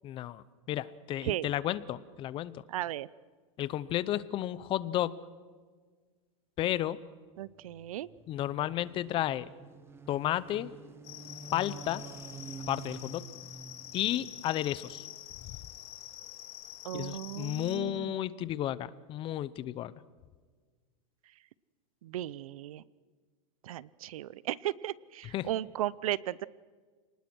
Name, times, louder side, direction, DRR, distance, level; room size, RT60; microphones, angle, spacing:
voice 1, 0.0-2.6 3.6-5.1 6.6-7.0 8.3-9.4 10.1-10.7 11.5-12.0 12.7-13.2 13.9-15.0 15.5-15.6 16.9-19.9 25.3-25.5, left 13 dB, 30° left, 18 dB, 0.7 m, -32 dB
voice 2, 2.7-3.1 7.4-8.1 16.8-18.2 22.0-22.8 23.6-26.5, right 13 dB, 80° right, 22 dB, 0.7 m, -36 dB
sound 1, 7.4-15.0, right 4 dB, 15° right, 1.5 m, -49 dB
sound 2, 11.0-17.8, left 14 dB, 50° left, 2.9 m, -47 dB
28.5 x 19.5 x 6.2 m, 1.5 s
supercardioid pair, 145°, 18 cm